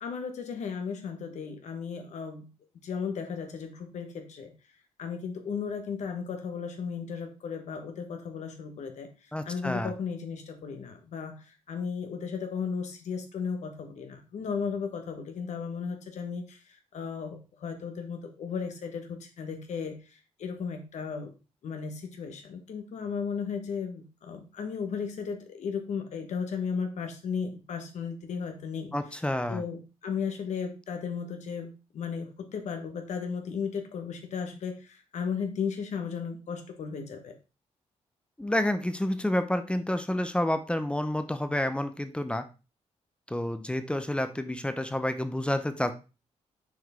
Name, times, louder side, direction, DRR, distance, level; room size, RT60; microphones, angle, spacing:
voice 1, 0.0-2.5 2.7-4.5 5.0-21.3 21.6-29.0 29.5-37.4, left 6 dB, 70° left, 5 dB, 1.2 m, -35 dB
voice 2, 9.3-9.9 28.9-29.6 38.4-42.4 43.3-46.0, left 1 dB, 10° left, 10 dB, 0.7 m, -29 dB
6.2 x 4.6 x 3.6 m, 0.31 s
cardioid pair, 75°, 12 cm